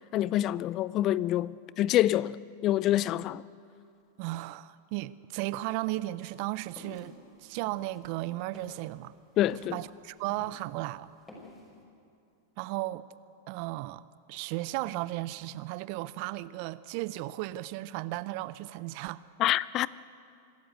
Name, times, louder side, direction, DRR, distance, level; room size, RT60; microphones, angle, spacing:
voice 1, 0.1-2.4 2.6-3.4 9.4-9.8 19.4-19.9, left 13 dB, 40° left, 0.4 m, -26 dB
voice 2, 4.2-7.1 7.4-9.1 9.7-11.1 12.6-13.0 13.5-14.0 14.3-19.2, right 18 dB, 50° right, 0.6 m, -35 dB
sound 1, 6.2-10.8 11.1-11.7, left 2 dB, 15° left, 5.7 m, -50 dB
25.5 x 13.5 x 8.2 m
hypercardioid pair, 95°, 0 cm